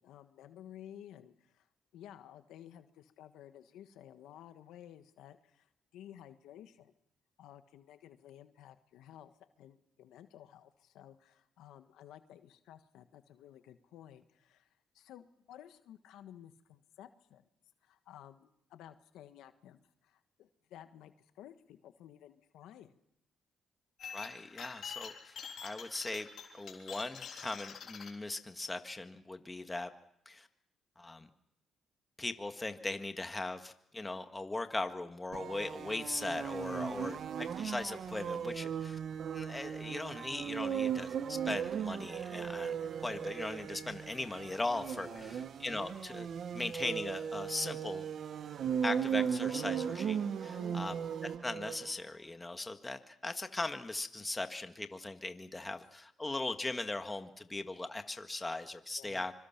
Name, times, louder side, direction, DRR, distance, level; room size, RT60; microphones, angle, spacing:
voice 1, 0.0-1.7 1.9-6.9 7.4-9.3 9.6-17.5 17.8-23.0 36.7-37.1 45.1-45.4 50.6-50.8 59.0-59.3, left 11 dB, 85° left, 9 dB, 1.5 m, -54 dB
sound 1, 24.0-28.1, left 7 dB, 60° left, 3.7 m, -46 dB
voice 2, 24.1-26.3 26.5-29.9 30.3-30.5 31.0-31.3 32.2-39.0 39.3-46.3 46.5-48.0 48.8-51.0 51.2-59.3, left 2 dB, 15° left, 7 dB, 1.8 m, -39 dB
sound 2, 35.3-51.9, right 8 dB, 60° right, 1.0 m, -37 dB
25.5 x 24.0 x 6.0 m, 0.75 s
cardioid pair, 90°, 0 cm